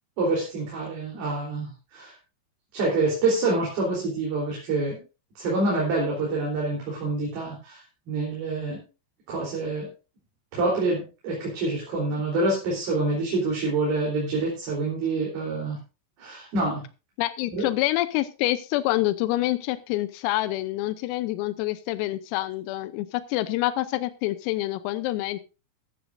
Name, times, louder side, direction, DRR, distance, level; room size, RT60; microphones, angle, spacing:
voice 1, 0.2-2.2 2.7-5.0 5.4-8.8 9.3-9.9 10.5-15.8 16.2-16.8 17.5-17.7, right 2 dB, 50° right, -4 dB, 5.2 m, -27 dB
voice 2, 17.2-25.4, left 16 dB, 90° left, 12 dB, 3.4 m, -27 dB
14.5 x 13.0 x 2.6 m, 0.31 s
omnidirectional pair, 5.9 m